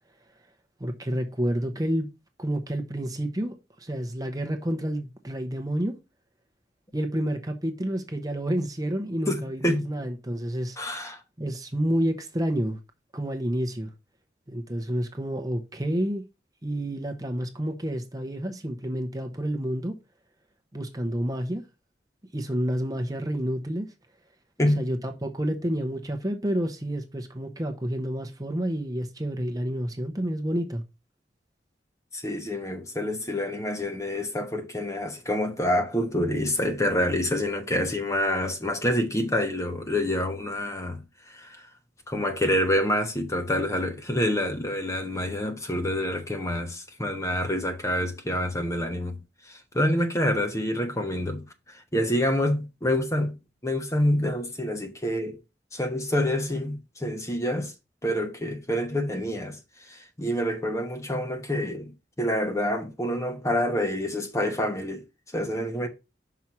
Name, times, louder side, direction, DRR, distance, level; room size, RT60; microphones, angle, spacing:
voice 1, 0.8-2.1 2.4-5.9 6.9-11.0 11.4-12.8 13.1-13.9 14.5-16.2 16.6-20.0 20.7-21.6 22.3-23.9 24.8-30.8, equal, 20° right, 0.8 m, -29 dB
voice 2, 9.3-9.9 10.8-11.2 24.6-24.9 32.1-41.7 42.1-49.2 49.5-55.4 55.7-57.7 58.0-65.0 65.3-65.9, left 1 dB, 15° left, 1.0 m, -27 dB
5.9 x 4.6 x 5.7 m
head